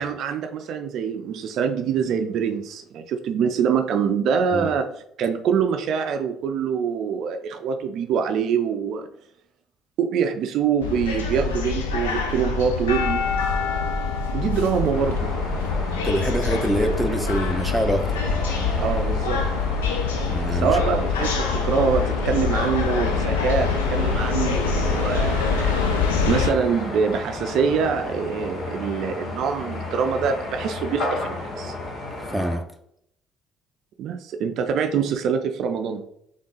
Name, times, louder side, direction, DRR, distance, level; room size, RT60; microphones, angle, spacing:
voice 1, 0.0-4.9 5.2-9.1 10.0-13.3 14.3-15.3 18.8-19.4 20.5-25.9 26.3-31.7 34.0-36.1, right 6 dB, 65° right, 6 dB, 0.4 m, -24 dB
sound 1, 10.8-26.5, left 5 dB, 85° left, 0.5 m, -25 dB
sound 2, 14.9-32.6, left 2 dB, 60° left, 1.4 m, -32 dB
voice 2, 16.0-18.2 20.2-20.8 32.3-32.6, equal, ahead, 4 dB, 0.8 m, -25 dB
3.8 x 3.7 x 3.8 m, 0.72 s
hypercardioid pair, 55°, 0 cm